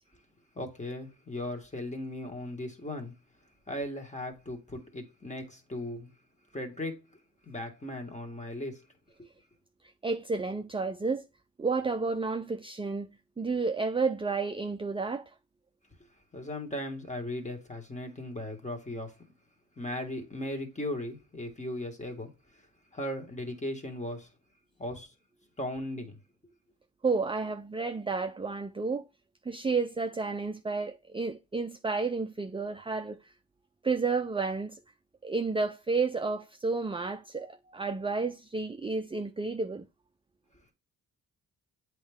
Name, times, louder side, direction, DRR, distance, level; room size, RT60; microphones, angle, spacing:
voice 1, 0.6-3.1 3.7-6.1 6.5-7.0 7.4-8.8 16.3-19.1 19.8-22.3 22.9-24.3 24.8-25.1 25.6-26.2, left 1 dB, 20° left, 1.9 m, -37 dB
voice 2, 10.0-11.2 11.6-15.3 27.0-29.0 29.4-33.2 33.8-34.8 35.2-39.9, right 4 dB, 15° right, 0.5 m, -31 dB
8.4 x 3.1 x 3.6 m
cardioid pair, 80°, 37 cm